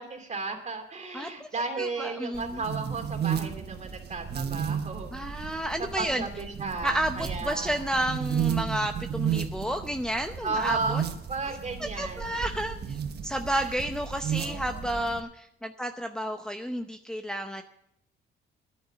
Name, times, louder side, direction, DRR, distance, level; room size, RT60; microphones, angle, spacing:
voice 1, 0.0-7.8 10.4-11.0 11.3-12.6 13.6-13.7 14.4-14.9, right 3 dB, 35° right, 4 dB, 2.6 m, -34 dB
voice 2, 1.1-1.5 1.8-2.6 5.1-6.3 6.8-11.0 11.8-17.6, right 1 dB, 5° left, 5 dB, 0.7 m, -31 dB
sound 1, 2.3-15.2, right 8 dB, 55° right, 1.3 m, -33 dB
10.5 x 9.3 x 8.2 m, 0.78 s
cardioid pair, 90°, 20 cm